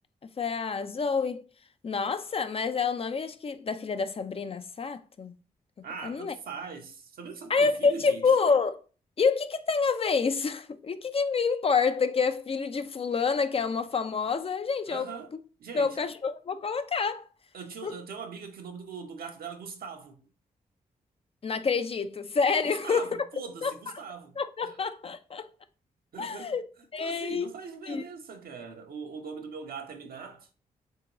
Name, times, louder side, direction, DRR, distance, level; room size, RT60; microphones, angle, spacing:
voice 1, 0.4-1.4 1.8-5.3 5.8-6.3 7.5-8.8 9.2-15.1 15.7-17.3 17.8-18.0 21.4-23.1 23.6-23.7 24.4-25.5 26.2-26.6 26.9-27.5 27.9-28.0, left 5 dB, 35° left, 0.4 m, -28 dB
voice 2, 5.8-8.3 14.9-15.3 15.6-16.0 17.5-20.2 22.6-24.8 26.1-26.6 27.0-30.5, right 5 dB, 70° right, 0.7 m, -41 dB
3.6 x 2.7 x 2.9 m
supercardioid pair, 45°, 16 cm